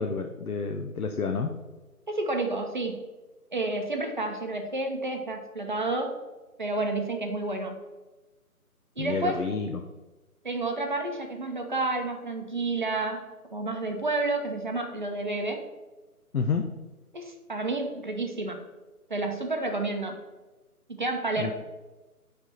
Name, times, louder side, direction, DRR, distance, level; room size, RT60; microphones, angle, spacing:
voice 1, 0.0-1.5 9.0-9.8 16.3-16.6 21.4-21.5, left 5 dB, 70° left, 4 dB, 0.7 m, -29 dB
voice 2, 2.1-3.1 3.5-6.1 6.6-7.8 9.0-9.5 10.4-15.6 17.1-18.6 19.1-20.2 20.9-21.5, right 2 dB, 35° right, 3 dB, 0.7 m, -30 dB
8.8 x 3.4 x 4.3 m, 1.2 s
figure-of-eight pair, 150°, 45 cm